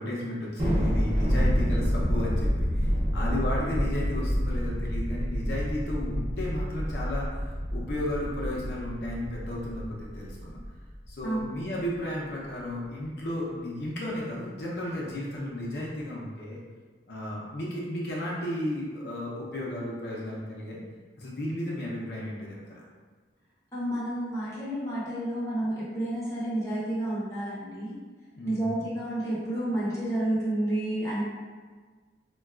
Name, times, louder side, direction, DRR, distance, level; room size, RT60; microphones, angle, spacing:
voice 1, 0.0-10.6 11.1-16.6 17.1-20.8 21.2-22.8 28.4-28.8, left 1 dB, 60° left, -5 dB, 0.6 m, -34 dB
Thunder, 0.6-11.2, equal, 35° right, 0.7 m, -28 dB
voice 2, 11.2-11.7 23.7-28.0 28.4-31.2, right 1 dB, 15° left, -9 dB, 0.7 m, -30 dB
3.9 x 2.2 x 2.3 m, 1.5 s
head